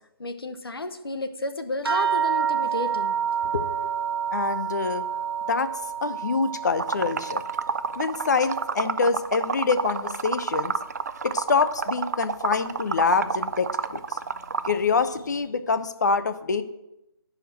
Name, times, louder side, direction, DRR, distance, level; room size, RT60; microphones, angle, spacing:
voice 1, 0.2-3.2 3.4-3.9, left 2 dB, 65° left, 9 dB, 1.0 m, -32 dB
sound 1, 1.8-10.7 11.0-11.9 12.6-12.7 13.1-13.3, right 8 dB, 65° right, 1.1 m, -30 dB
voice 2, 4.3-5.0 5.5-5.7 6.0-7.4 8.0-10.8 11.2-14.2 14.6-16.6, left 5 dB, 45° left, 11 dB, 0.7 m, -25 dB
Liquid, 6.8-14.8, right 6 dB, 40° right, 0.4 m, -29 dB
9.6 x 5.0 x 7.6 m, 0.87 s
figure-of-eight pair, 145°, 13 cm